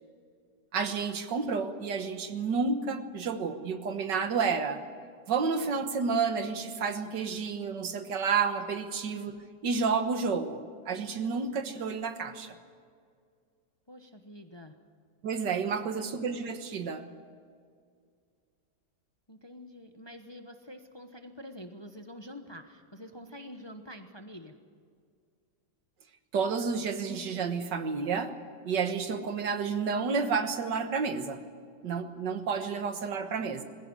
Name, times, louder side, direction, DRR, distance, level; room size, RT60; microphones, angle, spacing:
voice 1, 0.7-4.8 5.3-9.4 9.6-12.6 15.2-17.1 26.3-28.3 28.7-31.4 31.8-33.6, right 5 dB, 85° right, 8 dB, 2.0 m, -30 dB
voice 2, 13.9-14.7 15.6-15.9 19.3-24.5, left 1 dB, 20° left, 6 dB, 0.9 m, -47 dB
21.0 x 16.0 x 9.7 m, 2.1 s
omnidirectional pair, 1.8 m